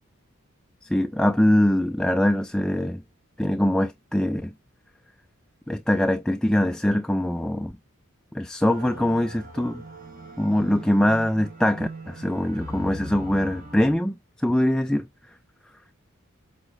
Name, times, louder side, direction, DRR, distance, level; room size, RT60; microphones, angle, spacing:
voice 1, 0.9-3.0 3.4-4.5 5.7-7.7 8.3-9.8 10.4-14.1 14.4-15.1, left 1 dB, 5° left, 0.4 m, -23 dB
sound 1, 8.6-13.9, right 1 dB, 40° right, 2.0 m, -40 dB
7.9 x 4.0 x 4.0 m
head